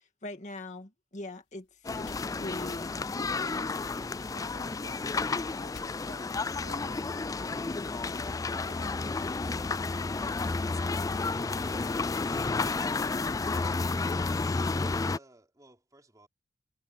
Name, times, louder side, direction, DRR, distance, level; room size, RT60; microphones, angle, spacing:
voice 1, 0.0-3.9, left 2 dB, 40° left, 1.9 m, -43 dB
sound 1, 1.3-6.6 7.2-7.8 8.0-8.2 8.7-9.1 9.5-9.9 10.3-10.5 10.7-10.8 11.3-11.6 12.2-12.4, left 3 dB, 75° left, 5.7 m, -57 dB
sound 2, 1.8-15.2, left 3 dB, 20° left, 0.3 m, -31 dB
voice 2, 3.7-7.1 8.4-9.0, right 3 dB, 70° right, 6.9 m, -56 dB
voice 3, 13.8-14.3 14.7-16.3, right 2 dB, 20° right, 4.8 m, -58 dB
head